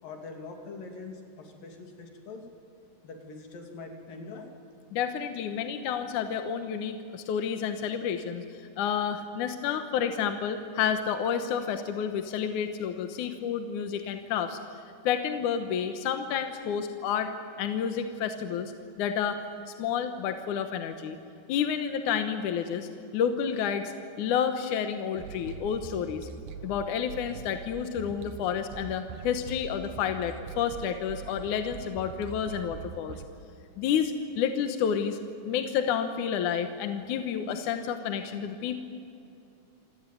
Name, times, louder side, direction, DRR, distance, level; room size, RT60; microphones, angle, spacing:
voice 1, 0.0-2.5 3.0-4.5, left 3 dB, 85° left, 3 dB, 4.6 m, -43 dB
voice 2, 4.9-8.4 8.8-14.6 15.0-17.3 17.6-18.7 19.0-19.4 19.8-21.2 21.5-23.9 24.2-26.3 26.6-33.2 33.8-35.2 35.4-38.8, left 8 dB, 70° left, 7 dB, 2.5 m, -30 dB
sound 1, 25.2-33.3, right 6 dB, 75° right, 2.7 m, -43 dB
27.5 x 18.0 x 9.3 m, 2.6 s
omnidirectional pair, 3.9 m